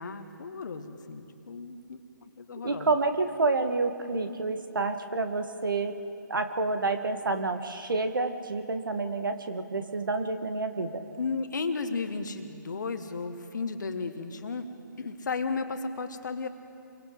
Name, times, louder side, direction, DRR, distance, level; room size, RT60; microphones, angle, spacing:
voice 1, 0.0-2.0 2.4-2.9 11.2-14.7 15.0-16.5, left 4 dB, 60° left, 7 dB, 1.6 m, -34 dB
voice 2, 2.6-6.0 6.3-11.0, right 3 dB, 75° right, 7 dB, 1.7 m, -29 dB
28.5 x 23.0 x 3.9 m, 2.8 s
figure-of-eight pair, 145°, 11 cm